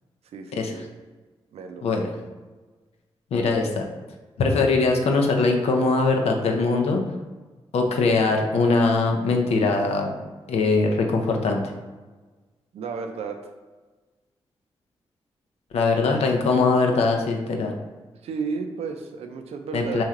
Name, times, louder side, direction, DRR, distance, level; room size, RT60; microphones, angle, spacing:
voice 1, 0.3-0.9 1.5-2.1 12.7-13.5 18.2-20.0, right 5 dB, 80° right, 5 dB, 0.4 m, -33 dB
voice 2, 3.3-3.8 4.4-7.0 7.7-10.1 10.5-11.6 15.7-17.7 19.7-20.0, left 3 dB, 85° left, 3 dB, 0.7 m, -21 dB
4.2 x 3.2 x 3.7 m, 1.3 s
cardioid pair, 60°, 10 cm